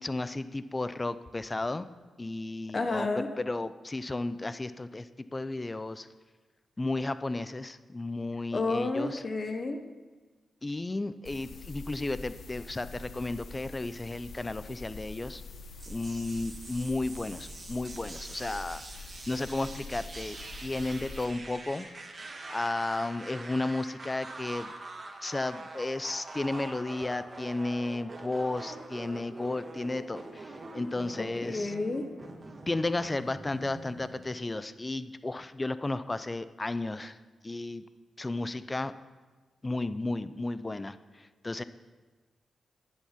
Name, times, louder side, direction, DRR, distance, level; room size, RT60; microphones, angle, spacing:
voice 1, 0.0-1.8 2.2-6.1 6.8-9.2 10.6-15.4 15.9-21.9 22.5-24.7 25.2-31.7 32.7-37.2 37.4-37.8 38.2-38.9 39.6-41.6, left 2 dB, 30° left, 14 dB, 0.5 m, -33 dB
voice 2, 2.7-3.3 8.5-9.8 31.2-32.1, left 3 dB, 45° left, 6 dB, 0.9 m, -30 dB
sound 1, 11.2-21.2, left 3 dB, 70° left, 1.1 m, -45 dB
sound 2, 15.8-34.2, right 2 dB, 45° right, 1.5 m, -45 dB
10.5 x 7.5 x 5.8 m, 1.3 s
supercardioid pair, 50°, 0 cm